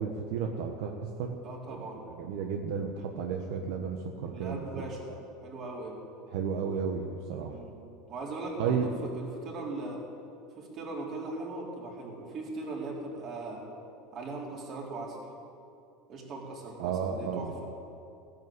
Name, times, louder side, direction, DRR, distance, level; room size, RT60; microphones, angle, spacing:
voice 1, 0.0-1.4 1.7-4.6 5.1-5.2 6.3-7.6 8.6-8.9 16.8-17.5, right 6 dB, 70° right, 3 dB, 1.2 m, -33 dB
voice 2, 1.4-2.0 4.3-5.1 5.4-6.0 7.5-7.8 8.1-10.0 10.6-13.6 14.1-15.2 16.1-17.5, right 2 dB, 40° right, -2 dB, 4.0 m, -39 dB
16.5 x 10.5 x 8.0 m, 2.7 s
supercardioid pair, 135°, 0 cm